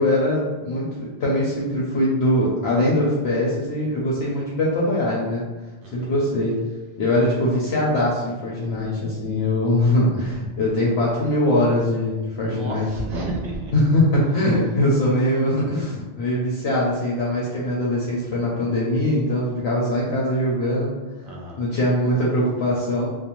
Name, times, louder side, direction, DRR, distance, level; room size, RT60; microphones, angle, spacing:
voice 1, 0.0-5.4 5.9-6.6 7.0-12.9 13.7-20.9 21.6-23.1, left 1 dB, 80° left, -5 dB, 0.8 m, -22 dB
voice 2, 5.8-6.1 12.4-13.7 21.2-21.6, right 1 dB, 60° right, -2 dB, 0.7 m, -31 dB
2.5 x 2.1 x 2.9 m, 1.2 s
omnidirectional pair, 1.1 m